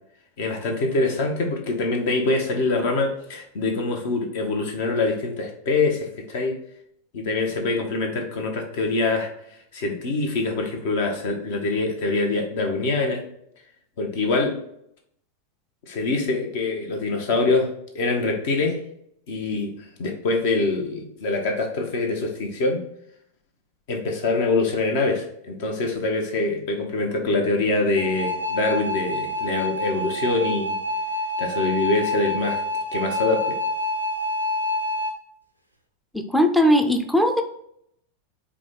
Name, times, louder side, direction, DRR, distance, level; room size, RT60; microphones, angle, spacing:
voice 1, 0.4-6.6 7.1-9.3 9.7-13.2 14.0-14.5 15.9-17.7 17.9-18.8 19.3-22.8 23.9-30.8 31.4-32.6 32.9-33.6, left 3 dB, 50° left, 3 dB, 0.9 m, -24 dB
sound 1, 28.0-35.1, left 1 dB, 90° left, 0.5 m, -27 dB
voice 2, 36.1-37.4, equal, ahead, 5 dB, 0.5 m, -19 dB
4.8 x 2.3 x 3.9 m, 0.72 s
figure-of-eight pair, 90°, 0 cm